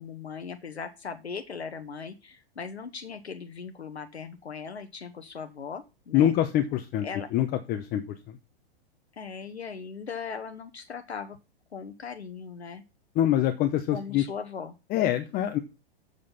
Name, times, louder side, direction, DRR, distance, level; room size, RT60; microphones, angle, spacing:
voice 1, 0.0-6.3 7.0-7.3 9.1-11.4 11.7-12.8 13.9-14.7, left 6 dB, 90° left, 8 dB, 1.1 m, -39 dB
voice 2, 6.1-7.1 7.3-8.4 13.2-14.2 14.9-15.6, left 11 dB, 30° left, 7 dB, 0.9 m, -25 dB
7.5 x 6.6 x 5.5 m, 0.28 s
hypercardioid pair, 110°, 32 cm